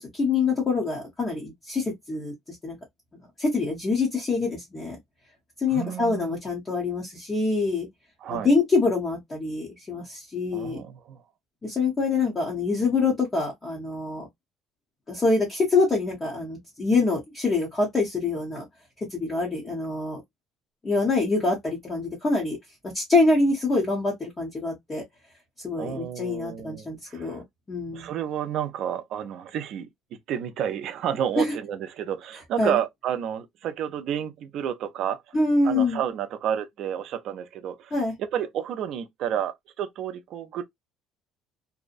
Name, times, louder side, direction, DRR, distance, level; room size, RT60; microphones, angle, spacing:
voice 1, 0.0-2.3 2.6-2.8 3.4-5.0 5.6-7.9 8.3-10.8 11.6-14.3 15.1-18.6 19.0-20.2 20.8-22.6 22.9-25.0 25.6-28.1 31.4-31.5 32.6-32.8 35.3-36.0 37.9-38.1, left 3 dB, 20° left, 0.8 m, -25 dB
voice 2, 5.7-6.4 8.2-8.5 10.5-11.2 25.8-27.4 27.9-35.4 35.6-37.9 38.2-40.6, right 9 dB, 50° right, 0.5 m, -31 dB
2.7 x 2.1 x 2.4 m
cardioid pair, 170°, 0 cm